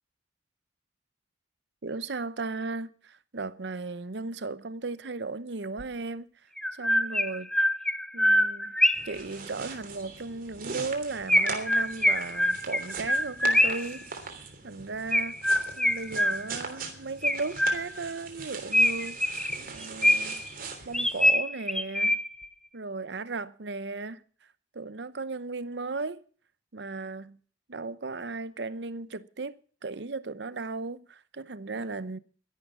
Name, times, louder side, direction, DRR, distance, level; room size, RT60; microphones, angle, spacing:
voice 1, 1.8-6.3 6.7-7.5 8.1-8.7 9.1-14.1 14.6-15.4 15.8-20.4 20.8-22.2 22.7-24.2 24.7-26.2 26.7-27.4 27.7-29.5 29.8-32.2, right 3 dB, 70° right, 0.8 m, -36 dB
Chirp tweet, 5.8-5.9 6.6-9.2 11.3-14.0 15.1-16.7 17.2-18.1 18.7-20.5 20.9-22.5, left 1 dB, 5° left, 0.6 m, -25 dB
sound 1, 8.9-21.3, right 4 dB, 50° right, 3.2 m, -41 dB
13.0 x 11.0 x 7.3 m
head